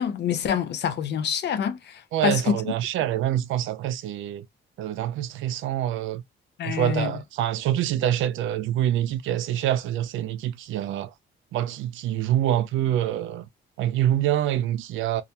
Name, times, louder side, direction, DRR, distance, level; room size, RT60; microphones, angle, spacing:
voice 1, 0.0-2.6 6.6-7.2, left 8 dB, 60° left, 0.5 m, -26 dB
voice 2, 2.1-4.4 4.8-6.2 6.6-11.1 11.5-13.5 13.8-15.2, right 12 dB, 80° right, 0.4 m, -26 dB
2.3 x 2.1 x 2.8 m
cardioid pair, 90°, 20 cm